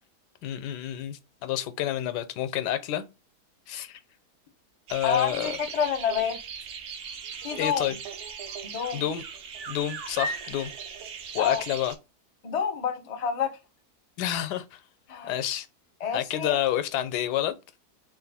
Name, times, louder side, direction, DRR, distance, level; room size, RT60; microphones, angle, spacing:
voice 1, 0.4-3.1 3.7-4.0 4.9-5.6 7.6-7.9 8.9-9.2 9.7-10.7 11.3-11.9 14.2-14.8 15.3-15.7 16.1-17.6, left 11 dB, 85° left, 1.2 m, -29 dB
sound 1, 4.9-12.0, right 5 dB, 60° right, 0.8 m, -38 dB
voice 2, 5.0-6.4 7.4-8.0 8.6-9.1 11.3-11.6 12.4-13.5 15.1-15.3 16.0-16.6, left 7 dB, 45° left, 0.5 m, -28 dB
3.1 x 2.5 x 4.0 m
omnidirectional pair, 1.7 m